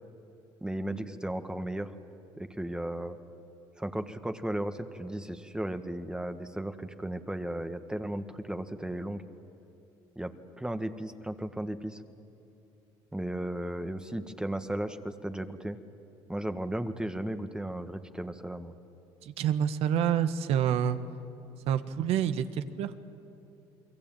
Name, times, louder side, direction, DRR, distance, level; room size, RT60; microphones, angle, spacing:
voice 1, 0.6-1.9 2.4-3.2 3.8-9.2 10.1-12.0 13.1-15.8 16.3-18.7, right 1 dB, 5° right, 8 dB, 1.6 m, -35 dB
voice 2, 19.2-21.0 21.7-22.9, right 9 dB, 70° right, 11 dB, 1.5 m, -27 dB
29.0 x 22.5 x 9.1 m, 2.7 s
supercardioid pair, 80°, 11 cm